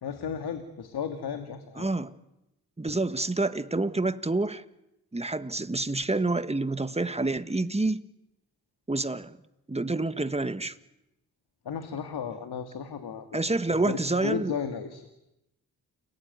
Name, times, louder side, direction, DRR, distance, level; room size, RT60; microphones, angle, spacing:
voice 1, 0.0-1.9 11.6-13.4 13.7-15.1, left 7 dB, 80° left, 2.4 m, -34 dB
voice 2, 1.8-2.1 2.8-4.6 5.1-8.0 8.9-9.4 9.7-10.7 13.3-14.5, right 2 dB, 15° right, 1.5 m, -28 dB
30.0 x 20.0 x 9.6 m
cardioid pair, 85°, 38 cm